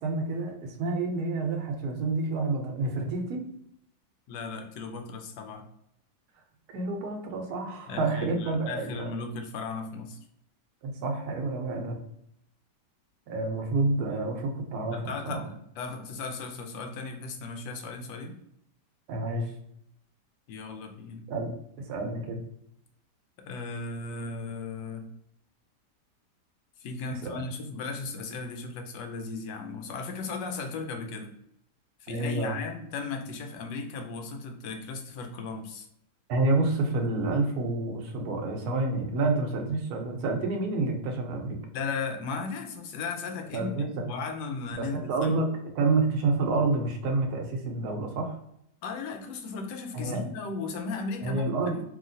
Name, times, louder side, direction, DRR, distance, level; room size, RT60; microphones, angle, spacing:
voice 1, 0.0-3.4 6.7-9.1 10.8-12.0 13.3-15.4 19.1-19.5 21.3-21.5 21.9-22.4 27.2-27.3 32.1-32.5 36.3-41.6 43.5-44.1 44.8-48.4 49.9-50.3 51.2-51.8, right 3 dB, 70° right, 3 dB, 1.1 m, -28 dB
voice 2, 4.3-5.6 7.9-10.2 14.9-18.3 20.5-21.3 23.4-25.1 26.8-31.3 32.0-35.9 41.7-45.4 48.8-51.8, left 4 dB, 80° left, 4 dB, 1.2 m, -36 dB
3.0 x 2.8 x 2.6 m, 0.74 s
omnidirectional pair, 1.9 m